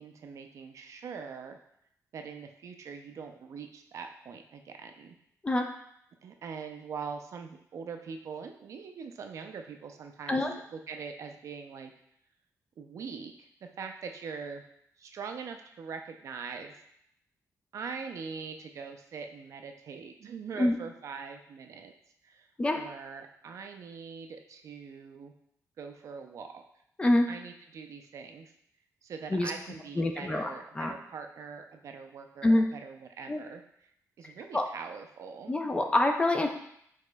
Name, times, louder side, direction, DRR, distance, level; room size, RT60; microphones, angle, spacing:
voice 1, 0.0-1.6 2.1-5.2 6.2-10.4 10.7-11.9 12.8-14.6 15.0-16.7 17.7-21.9 22.2-25.3 25.8-26.6 27.3-28.5 29.0-33.6 34.2-35.8, right 5 dB, 60° right, 5 dB, 0.4 m, -42 dB
voice 2, 30.0-30.9 32.4-32.7 33.3-33.4 34.2-34.6 35.5-36.5, left 1 dB, 20° left, 4 dB, 0.4 m, -26 dB
5.0 x 3.6 x 2.2 m, 0.72 s
wide cardioid pair, 160°, 6 cm